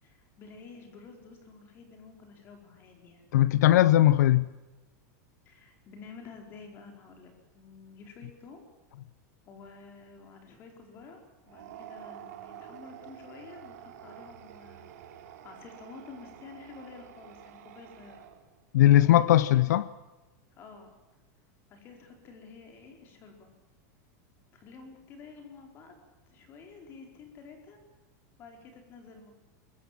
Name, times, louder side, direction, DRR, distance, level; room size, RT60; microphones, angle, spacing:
voice 1, 0.0-3.4 5.4-8.7 9.5-15.1 15.4-18.3 19.0-19.7 20.6-20.9 21.7-23.5 24.5-25.9 26.3-27.8 28.4-29.3, left 4 dB, 25° left, 4.4 m, -50 dB
voice 2, 3.3-4.5 18.7-19.8, left 13 dB, 80° left, 0.7 m, -19 dB
sound 1, 11.4-18.6, right 10 dB, 65° right, 3.7 m, -48 dB
24.5 x 22.5 x 7.5 m
supercardioid pair, 175°, 9 cm